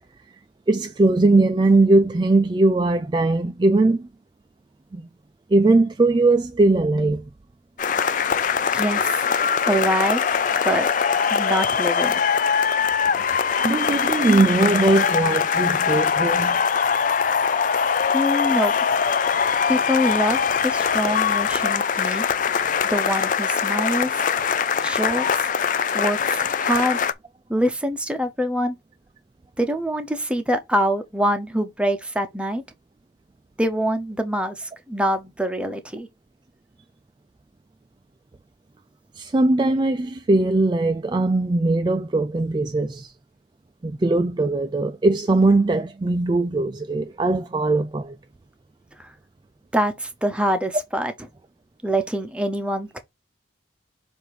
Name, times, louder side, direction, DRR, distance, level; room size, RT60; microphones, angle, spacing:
voice 1, 0.7-4.1 4.9-5.1 5.5-7.3 13.6-16.6 39.1-43.1 43.8-48.2, right 2 dB, 25° right, 0.3 m, -20 dB
sound 1, 7.8-27.1, left 6 dB, 45° left, 0.4 m, -22 dB
voice 2, 8.0-8.3 8.7-9.2 9.6-10.9 11.3-12.2 17.5-17.7 18.1-18.8 19.7-22.2 22.9-24.3 24.8-25.5 25.9-27.0 27.5-28.8 29.6-32.6 33.6-36.1 49.0-49.1 49.7-51.1 51.8-53.0, equal, 5° right, 0.7 m, -25 dB
sound 2, 16.3-19.4, left 5 dB, 25° left, 1.3 m, -46 dB
7.7 x 2.6 x 4.7 m
head